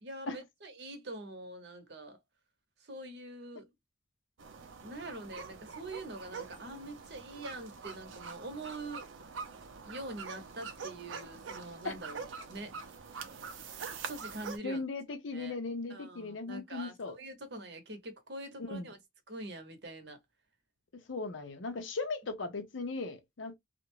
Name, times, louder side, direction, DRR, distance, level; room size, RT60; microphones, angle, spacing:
voice 1, 0.0-2.2 2.8-3.7 4.8-9.1 9.8-12.7 14.1-14.8 15.3-15.6 15.9-19.0 19.3-20.2, right 2 dB, 60° right, 0.8 m, -44 dB
sound 1, 4.4-14.6, right 5 dB, 90° right, 0.5 m, -45 dB
voice 2, 14.6-17.1 18.6-18.9 21.1-23.5, left 3 dB, 90° left, 0.7 m, -37 dB
2.5 x 2.1 x 2.9 m
head